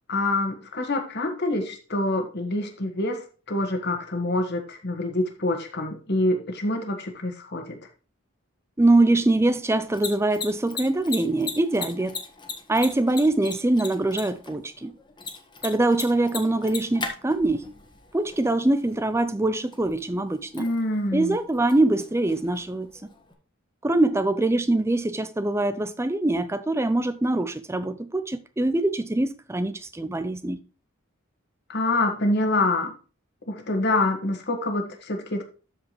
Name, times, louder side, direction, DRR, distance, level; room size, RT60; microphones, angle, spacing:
voice 1, 0.1-7.8 20.6-21.4 31.7-32.9 33.5-35.4, left 2 dB, 55° left, 1.7 m, -26 dB
voice 2, 8.8-12.2 12.7-14.9 15.6-17.7 18.1-20.7 21.1-23.1 23.8-30.6, right 2 dB, 15° right, 0.5 m, -23 dB
Mechanisms, 9.7-23.3, left 4 dB, 20° left, 1.5 m, -39 dB
13.0 x 5.0 x 3.1 m
head